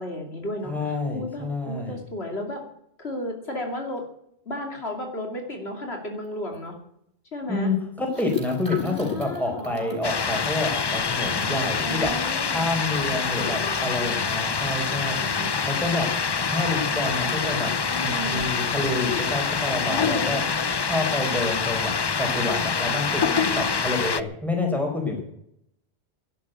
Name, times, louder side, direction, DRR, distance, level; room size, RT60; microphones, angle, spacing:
voice 1, 0.0-2.6 3.0-4.0 4.5-6.7 7.3-7.7 8.8-10.0 11.8-12.6 12.9-14.5 14.9-15.5 17.9-18.4 19.9-20.4 23.2-23.7, left 1 dB, 75° left, 2 dB, 3.0 m, -34 dB
voice 2, 0.6-2.0 7.5-12.2 12.5-16.1 16.5-17.7 18.0-20.4 20.9-23.3 23.5-25.2, left 2 dB, ahead, 1 dB, 4.6 m, -28 dB
sound 1, 6.2-6.3 6.5-6.7 8.1-11.8 12.3-12.4 12.7-13.0, right 3 dB, 65° right, 3.8 m, -45 dB
sound 2, 10.0-24.2, left 5 dB, 35° left, 0.4 m, -26 dB
12.0 x 11.0 x 9.3 m, 0.74 s
omnidirectional pair, 1.1 m